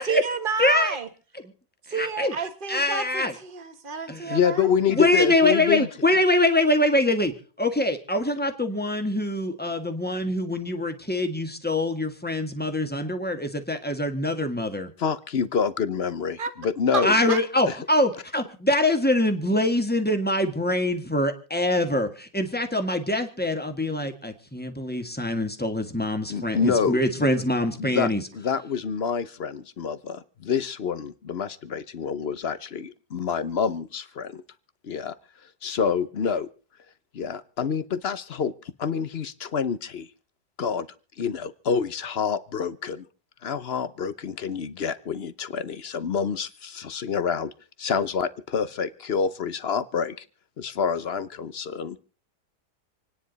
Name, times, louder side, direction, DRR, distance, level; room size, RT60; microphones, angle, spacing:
voice 1, 0.0-1.1 1.9-4.7 16.4-16.5 16.9-17.4, right 5 dB, 30° right, 9 dB, 1.5 m, -30 dB
voice 2, 0.6-1.0 1.9-2.3 2.7-3.3 4.1-4.4 4.9-14.9 17.0-28.2, left 1 dB, 5° left, 5 dB, 1.5 m, -24 dB
voice 3, 4.3-5.9 15.0-17.2 17.7-17.8 26.3-27.3 27.8-34.4 34.8-35.1 35.6-36.5 37.1-38.5 38.8-40.1 40.6-40.9 41.2-43.0 43.4-47.5 47.8-50.2 50.6-52.0, left 6 dB, 50° left, 14 dB, 0.8 m, -27 dB
27.5 x 9.9 x 4.0 m, 0.39 s
omnidirectional pair, 1.8 m